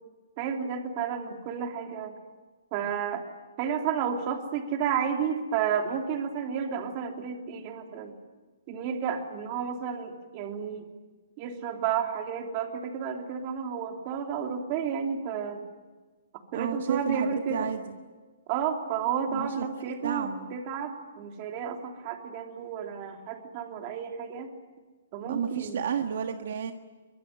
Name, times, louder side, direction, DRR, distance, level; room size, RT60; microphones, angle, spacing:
voice 1, 0.4-2.1 2.7-3.2 3.6-8.1 8.7-10.9 11.4-15.6 16.5-17.7 18.5-24.5 25.1-25.8, right 7 dB, 25° right, 4 dB, 3.2 m, -31 dB
voice 2, 16.5-17.9 19.3-20.5 25.3-26.7, right 7 dB, 55° right, 6 dB, 1.6 m, -32 dB
24.0 x 23.5 x 9.3 m, 1.4 s
hypercardioid pair, 175°, 0 cm